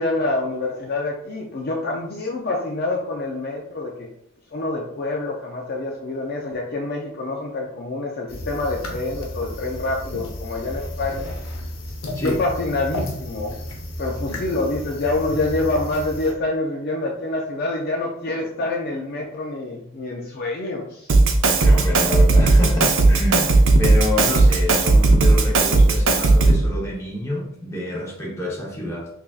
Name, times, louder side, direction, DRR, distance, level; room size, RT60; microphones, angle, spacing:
voice 1, 0.0-4.1 4.5-11.4 12.2-13.6 14.0-21.1, left 2 dB, 45° left, 0 dB, 0.4 m, -26 dB
sound 1, 8.3-16.3, left 1 dB, 70° left, 0.8 m, -32 dB
Drum kit, 21.1-26.7, right 2 dB, 60° right, 0.5 m, -15 dB
voice 2, 21.6-29.1, left 1 dB, 15° left, -4 dB, 0.9 m, -28 dB
4.8 x 2.7 x 2.4 m, 0.72 s
head